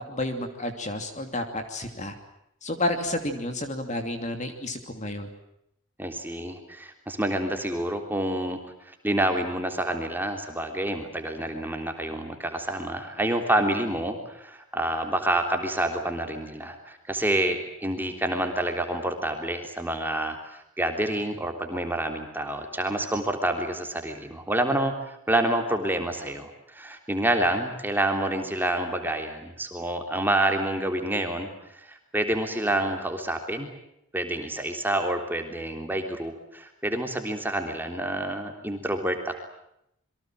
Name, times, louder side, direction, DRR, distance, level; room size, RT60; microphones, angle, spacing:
voice 1, 0.1-2.2 2.6-5.3, left 1 dB, 30° left, 6 dB, 2.8 m, -31 dB
voice 2, 6.0-8.6 8.9-33.7 34.1-39.4, right 1 dB, 10° right, 4 dB, 3.4 m, -28 dB
28.0 x 23.5 x 7.6 m, 0.79 s
head